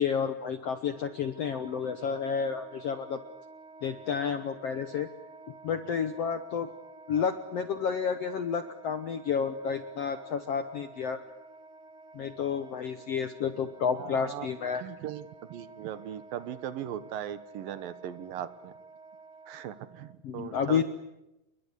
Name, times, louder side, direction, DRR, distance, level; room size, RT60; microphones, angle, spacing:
voice 1, 0.0-3.2 3.8-5.1 5.6-6.7 7.1-11.2 12.1-14.8 20.2-20.8, left 7 dB, 65° left, 9 dB, 1.5 m, -30 dB
Wind instrument woodwind instrument, 0.6-20.1, right 3 dB, 40° right, 2.9 m, -51 dB
voice 2, 13.9-14.5 14.8-18.7 19.5-20.8, right 10 dB, 75° right, 13 dB, 2.9 m, -39 dB
28.5 x 22.5 x 8.4 m, 0.91 s
omnidirectional pair, 4.3 m